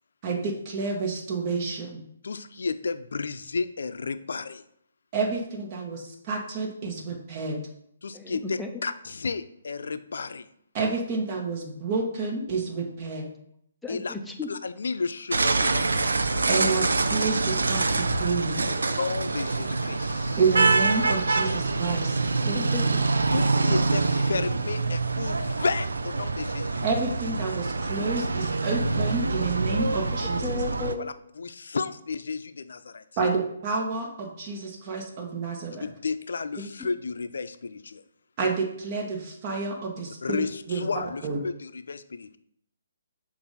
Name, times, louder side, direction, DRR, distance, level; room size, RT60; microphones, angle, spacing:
voice 1, 0.2-2.0 5.1-7.6 10.7-13.3 16.5-18.7 20.4-22.2 26.8-30.4 33.2-35.8 38.4-40.9 41.2-41.4, right 4 dB, 30° right, 1 dB, 1.3 m, -29 dB
voice 2, 2.2-4.6 8.0-10.5 13.9-14.1 14.5-16.1 18.7-20.4 23.3-26.8 31.0-33.0 35.8-38.0 40.2-42.4, left 4 dB, 75° left, 11 dB, 0.4 m, -32 dB
voice 3, 8.1-8.7 13.8-14.5 22.4-23.1 23.5-23.8 30.1-31.2 36.6-36.9, left 4 dB, ahead, 1 dB, 0.6 m, -35 dB
sound 1, 15.3-30.9, right 3 dB, 90° right, 0.5 m, -25 dB
6.8 x 2.6 x 5.5 m, 0.71 s
hypercardioid pair, 150°, 0 cm